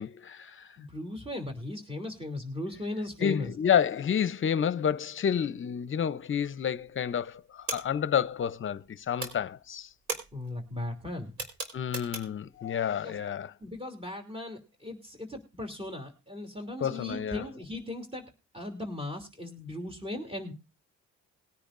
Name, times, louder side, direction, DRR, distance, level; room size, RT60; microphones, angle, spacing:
voice 1, 0.0-0.7 3.2-9.9 11.7-13.5 16.8-17.4, left 8 dB, 40° left, 0.7 m, -29 dB
voice 2, 0.8-3.5 10.3-11.3 13.0-13.2 13.6-18.2 18.5-20.5, left 2 dB, 20° right, 2.9 m, -37 dB
sound 1, 6.4-6.9 7.2-8.9 9.1-12.5, right 3 dB, 65° right, 4.4 m, -39 dB
21.0 x 10.0 x 2.6 m
cardioid pair, 90°, 30 cm